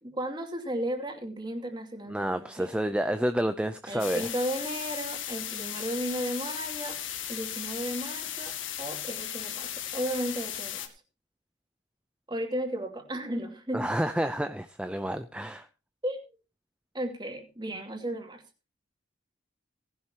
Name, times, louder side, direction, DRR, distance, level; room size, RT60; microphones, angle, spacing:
voice 1, 0.0-2.7 3.9-7.0 7.3-10.9 12.3-13.9 16.0-16.3 16.9-18.4, equal, 25° right, 4 dB, 2.6 m, -34 dB
voice 2, 2.1-4.3 13.7-15.7, right 1 dB, 5° right, 9 dB, 0.5 m, -29 dB
sound 1, 4.0-10.9, left 10 dB, 80° left, 1.9 m, -36 dB
18.5 x 11.5 x 2.9 m, 0.29 s
head